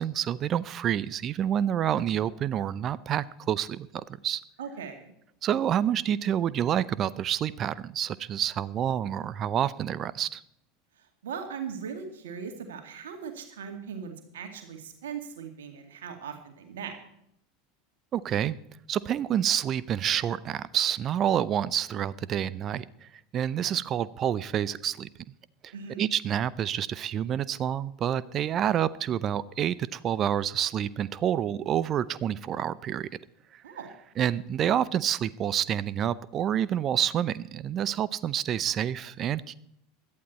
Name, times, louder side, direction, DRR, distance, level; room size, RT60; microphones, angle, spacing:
voice 1, 0.0-4.4 5.4-10.4 18.1-18.5 18.9-22.9 23.3-25.1 25.6-25.7 26.0-33.1 34.2-39.5, right 10 dB, 35° right, 19 dB, 0.6 m, -28 dB
voice 2, 4.6-5.1 11.0-17.0 25.7-26.0 33.6-33.9, right 6 dB, 70° right, 5 dB, 2.2 m, -39 dB
17.0 x 12.0 x 4.2 m, 0.75 s
figure-of-eight pair, 80°, 0 cm